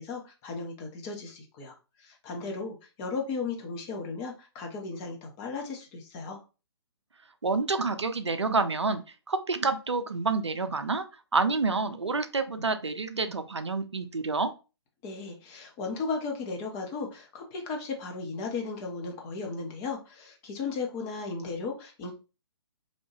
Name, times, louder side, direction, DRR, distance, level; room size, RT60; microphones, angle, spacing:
voice 1, 0.0-6.4 15.0-22.1, left 4 dB, 20° left, 2 dB, 0.4 m, -36 dB
voice 2, 7.4-9.0 9.3-11.0 11.3-14.5, right 3 dB, 80° right, 9 dB, 0.4 m, -28 dB
2.7 x 2.1 x 2.8 m, 0.31 s
figure-of-eight pair, 130°, 14 cm